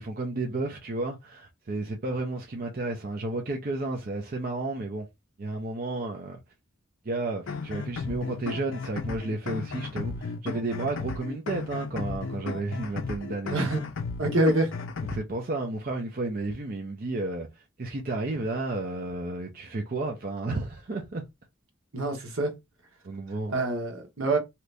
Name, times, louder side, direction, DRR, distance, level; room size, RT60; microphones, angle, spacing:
voice 1, 0.0-5.1 5.4-6.4 7.0-13.7 15.1-21.2 23.0-23.5, right 2 dB, 40° right, 0.5 m, -32 dB
sound 1, 7.5-15.2, left 4 dB, 60° left, 0.5 m, -35 dB
voice 2, 13.5-13.8 14.2-14.7 21.9-22.5 23.5-24.4, right 2 dB, 75° right, 1.2 m, -25 dB
2.9 x 2.5 x 3.3 m
head